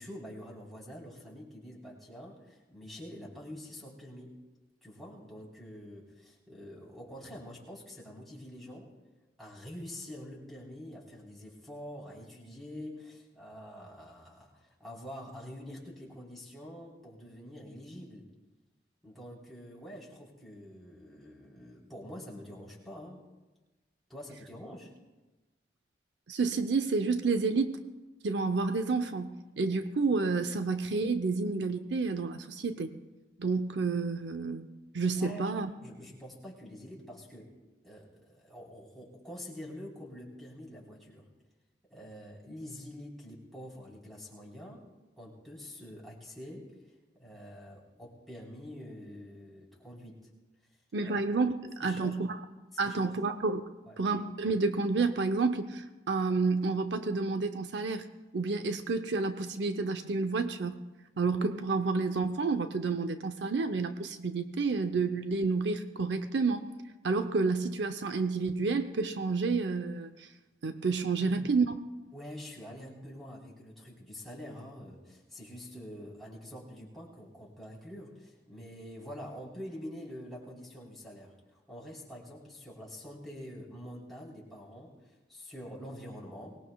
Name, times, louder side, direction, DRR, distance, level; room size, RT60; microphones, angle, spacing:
voice 1, 0.0-4.4 4.8-8.9 9.4-18.3 19.0-23.2 24.1-24.9 35.2-35.5 35.8-37.5 37.8-41.3 41.9-44.8 45.2-46.7 47.2-50.2 51.0-51.1 51.8-52.2 52.8-53.2 53.9-54.0 71.2-71.5 72.1-86.6, equal, ahead, -6 dB, 3.9 m, -46 dB
voice 2, 26.3-27.8 28.2-32.9 33.4-35.7 50.9-52.4 52.8-53.6 54.0-58.1 58.3-60.8 61.2-66.7 67.0-70.3 70.6-71.8, right 4 dB, 70° right, 8 dB, 0.7 m, -30 dB
23.5 x 19.5 x 2.3 m, 1.1 s
head